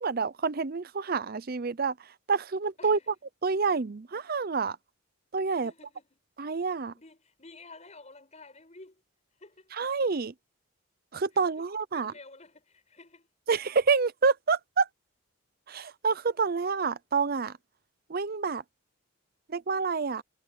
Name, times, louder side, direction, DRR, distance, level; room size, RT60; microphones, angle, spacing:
voice 1, 0.0-1.9 2.3-3.0 3.4-4.8 5.3-5.7 6.4-6.9 9.8-10.3 11.1-12.1 13.5-14.9 15.7-17.5 18.1-18.6 19.5-20.2, right 5 dB, 45° right, 0.6 m, -28 dB
voice 2, 2.8-3.1 5.6-6.2 6.9-9.0 9.4-9.7 11.3-11.7 11.9-13.3, left 3 dB, 35° left, 7.0 m, -51 dB
head